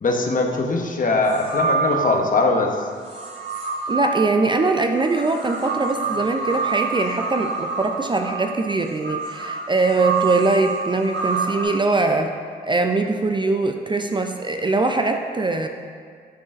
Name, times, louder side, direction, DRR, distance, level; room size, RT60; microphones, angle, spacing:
voice 1, 0.0-2.8, left 3 dB, 40° left, 2 dB, 0.9 m, -21 dB
sound 1, 1.2-2.5 3.0-11.6, right 5 dB, 65° right, 1.4 m, -27 dB
voice 2, 3.9-12.3 12.7-15.7, right 3 dB, 25° right, 5 dB, 0.4 m, -22 dB
11.0 x 3.8 x 2.5 m, 2.1 s
hypercardioid pair, 45°, 21 cm